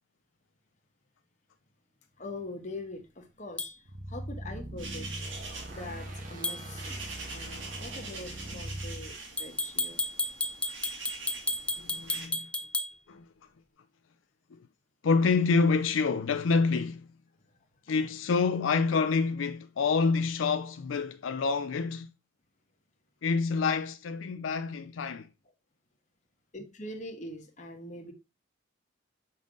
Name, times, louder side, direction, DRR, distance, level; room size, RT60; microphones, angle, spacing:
voice 1, 2.2-5.2 5.7-7.0 7.3-10.0 26.5-28.1, left 2 dB, 40° left, 1.3 m, -43 dB
sound 1, 3.6-3.7 6.4-6.6 9.4-12.9, left 2 dB, 5° left, 0.6 m, -32 dB
sound 2, 3.9-9.1, right 1 dB, 40° right, 1.3 m, -41 dB
sound 3, 4.8-12.3, right 3 dB, 75° right, 1.9 m, -44 dB
voice 2, 11.8-12.5 13.1-13.3 15.0-17.1 17.9-22.1 23.2-25.3, left 4 dB, 80° left, 0.4 m, -27 dB
5.5 x 3.8 x 5.0 m
head